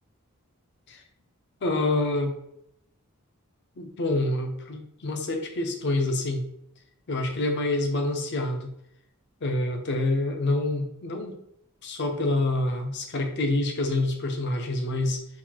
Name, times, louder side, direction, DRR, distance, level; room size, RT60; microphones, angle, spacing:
voice 1, 1.6-2.4 3.8-6.4 7.1-8.7 9.4-11.4 11.8-15.2, left 2 dB, 50° left, 5 dB, 0.5 m, -27 dB
4.0 x 2.5 x 2.9 m, 0.76 s
head